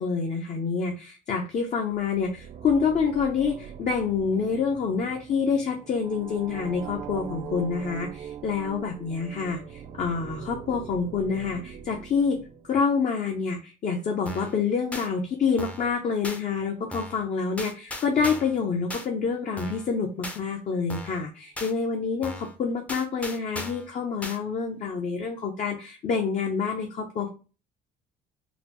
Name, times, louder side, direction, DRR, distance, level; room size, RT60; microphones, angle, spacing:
voice 1, 0.0-12.4 12.7-27.3, left 5 dB, 45° left, 2 dB, 0.6 m, -27 dB
sound 1, 1.8-13.0, right 8 dB, 45° right, 0.4 m, -42 dB
sound 2, 14.3-14.6 14.9-15.1 15.6-15.9 16.2-16.4 16.9-17.2 17.6-18.6 18.9-19.1 19.6-19.9 20.2-20.4 20.9-21.2 21.6-21.7 22.2-22.5 22.9-23.9 24.2-24.4, left 1 dB, 10° left, 0.5 m, -37 dB
4.0 x 2.0 x 2.9 m, 0.33 s
cardioid pair, 110°, 17 cm